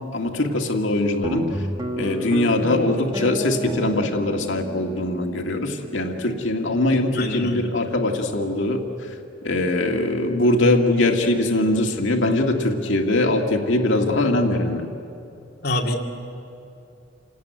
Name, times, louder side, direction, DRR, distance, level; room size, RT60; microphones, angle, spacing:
voice 1, 0.1-1.4 2.0-8.8 9.4-14.9, left 2 dB, 80° left, 2 dB, 1.9 m, -22 dB
Guitar, 1.2-7.9, equal, 20° right, 1.7 m, -32 dB
voice 2, 7.1-7.7 15.6-16.0, left 1 dB, 50° left, 0 dB, 2.4 m, -25 dB
28.5 x 18.5 x 9.4 m, 2.7 s
head